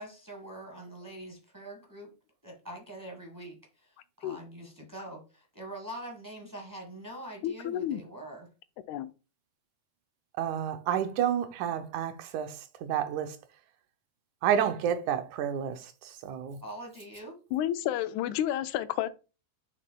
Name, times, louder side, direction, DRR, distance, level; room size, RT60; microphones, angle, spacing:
voice 1, 0.0-2.1 2.4-8.5 16.6-17.4, right 1 dB, 25° right, 0.4 m, -44 dB
voice 2, 7.4-8.0 8.9-9.1 17.5-19.1, left 12 dB, 85° left, 1.9 m, -30 dB
voice 3, 10.4-13.4 14.4-16.6, right 9 dB, 85° right, 2.2 m, -30 dB
7.3 x 6.5 x 2.3 m
omnidirectional pair, 3.3 m